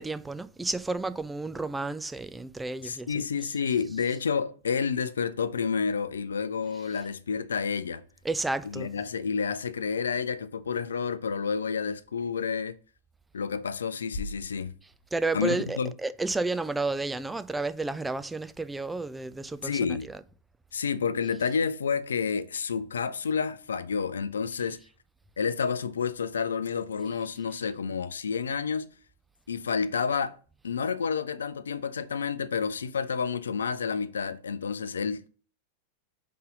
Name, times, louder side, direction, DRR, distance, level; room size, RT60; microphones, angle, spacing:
voice 1, 0.0-3.5 4.0-4.2 6.9-7.0 8.2-9.0 14.8-20.2, right 3 dB, 10° right, 0.4 m, -32 dB
voice 2, 2.8-8.0 8.6-12.8 13.3-14.7 15.3-15.9 19.6-20.1 20.7-24.8 25.4-28.9 29.5-30.4 30.6-35.3, left 6 dB, 70° left, 0.4 m, -30 dB
sound 1, 14.1-16.2, left 2 dB, 50° left, 0.8 m, -42 dB
5.5 x 3.8 x 5.2 m
figure-of-eight pair, 90°, 0 cm